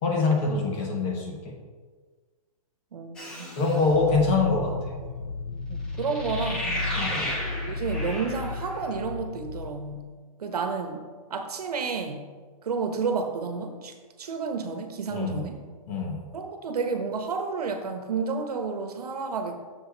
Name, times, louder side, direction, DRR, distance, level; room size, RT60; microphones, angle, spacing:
voice 1, 0.0-1.6 3.6-5.0 7.0-7.2 15.1-15.5 15.9-16.2, left 3 dB, 20° left, 2 dB, 1.1 m, -25 dB
voice 2, 2.9-3.6 5.7-7.0 7.6-10.1 10.4-11.0 11.3-12.2 12.6-15.6 16.3-19.6, right 5 dB, 75° right, 5 dB, 1.3 m, -31 dB
sound 1, 3.2-3.9 5.9-8.9, left 1 dB, 5° left, 0.3 m, -34 dB
sound 2, 3.8-9.7, left 4 dB, 65° left, 0.9 m, -34 dB
7.4 x 6.8 x 4.0 m, 1.5 s
hypercardioid pair, 170°, 20 cm